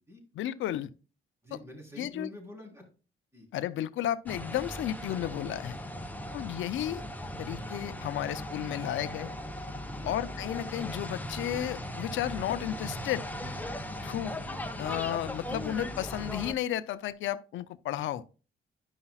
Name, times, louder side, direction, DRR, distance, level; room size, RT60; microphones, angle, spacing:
voice 1, 0.4-0.9 2.0-2.3 3.5-5.8 6.3-7.0 7.4-9.3 10.0-13.3 14.0-14.3 14.8-18.2, left 12 dB, 80° left, 0.6 m, -33 dB
voice 2, 1.4-2.9 3.3-3.5 6.1-6.6 9.9-10.2 13.9-14.3, left 1 dB, 15° right, 3.7 m, -48 dB
sound 1, 4.3-16.5, left 1 dB, 10° left, 1.0 m, -38 dB
10.5 x 5.6 x 2.3 m
cardioid pair, 90°, 20 cm